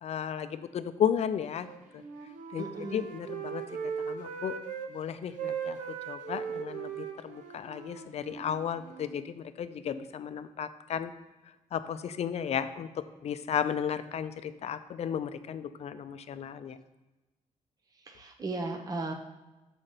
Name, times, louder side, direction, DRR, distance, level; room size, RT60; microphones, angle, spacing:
voice 1, 0.0-1.7 1.9-2.0 2.5-3.6 4.0-4.6 4.9-5.8 6.1-11.1 11.7-16.8, left 8 dB, 55° left, 12 dB, 0.5 m, -34 dB
Wind instrument woodwind instrument, 1.5-4.9 5.2-9.1, right 7 dB, 80° right, 1.0 m, -39 dB
voice 2, 2.6-3.1 18.1-19.1, right 3 dB, 30° right, 4 dB, 0.7 m, -36 dB
6.6 x 5.0 x 5.6 m, 1.1 s
cardioid pair, 135°, 13 cm